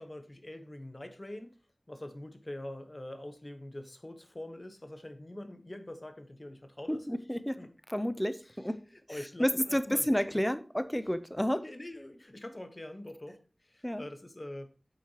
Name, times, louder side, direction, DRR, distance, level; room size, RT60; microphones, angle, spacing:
voice 1, 0.0-1.5 1.9-7.1 7.6-7.7 8.4-8.6 9.1-10.0 10.3-10.4 11.5-14.7, left 1 dB, 45° left, 7 dB, 1.1 m, -44 dB
voice 2, 6.9-7.6 7.9-8.8 9.4-11.6 13.8-14.0, equal, 10° left, 12 dB, 0.6 m, -30 dB
8.6 x 5.9 x 2.9 m, 0.37 s
wide cardioid pair, 45°, 0 cm